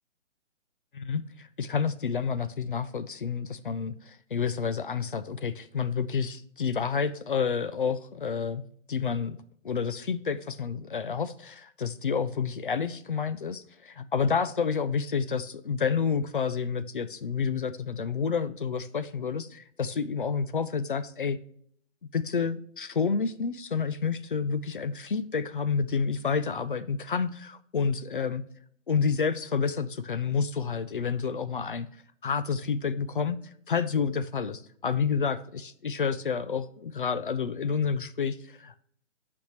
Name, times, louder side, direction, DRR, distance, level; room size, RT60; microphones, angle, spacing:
voice 1, 0.9-8.6 8.9-9.4 9.6-21.4 22.1-28.4 28.9-31.9 32.2-33.4 33.7-39.0, left 6 dB, 45° left, 14 dB, 0.4 m, -29 dB
8.0 x 5.2 x 3.0 m, 0.64 s
hypercardioid pair, 160°, 37 cm